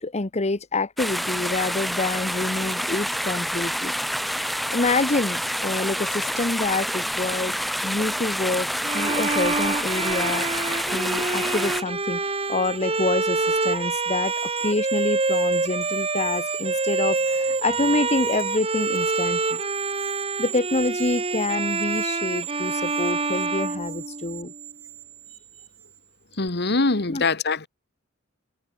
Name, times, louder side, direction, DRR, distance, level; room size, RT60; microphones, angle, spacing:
voice 1, 0.0-3.9 4.7-7.5 7.8-10.5 10.9-12.2 12.5-19.6 20.4-24.5 27.1-27.2, left 2 dB, 35° left, 1.1 m, -27 dB
sound 1, 1.0-11.8, equal, ahead, 2.0 m, -28 dB
Bowed string instrument, 8.8-24.6, right 3 dB, 30° right, 4.6 m, -26 dB
sound 2, 11.7-26.0 26.3-26.5, right 14 dB, 85° right, 7.0 m, -37 dB
voice 2, 26.4-27.7, left 3 dB, 55° left, 1.8 m, -23 dB
head